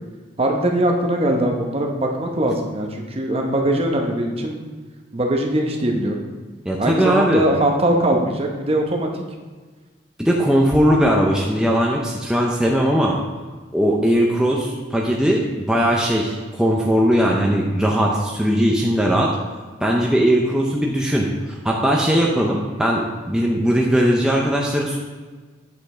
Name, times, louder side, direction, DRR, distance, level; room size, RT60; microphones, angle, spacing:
voice 1, 0.4-4.6 5.1-6.2 6.8-9.2, right 1 dB, 30° right, 2 dB, 0.8 m, -21 dB
voice 2, 6.6-7.5 10.2-13.2 13.7-19.3 19.8-25.0, equal, 5° right, -2 dB, 0.5 m, -19 dB
8.3 x 5.2 x 3.8 m, 1.4 s
head